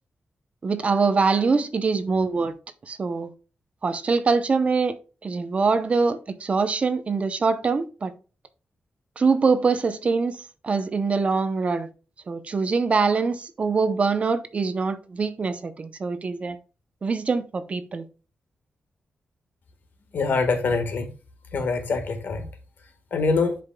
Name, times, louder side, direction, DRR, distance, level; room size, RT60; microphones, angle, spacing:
voice 1, 0.6-2.5 2.8-3.3 3.8-4.9 5.2-8.1 9.2-11.9 12.3-16.6 17.0-18.0, right 4 dB, 35° right, 0.6 m, -24 dB
voice 2, 20.1-21.1 21.5-22.5 23.1-23.6, left 4 dB, 60° left, 1.4 m, -24 dB
10.5 x 5.0 x 2.2 m
wide cardioid pair, 160°, 4 cm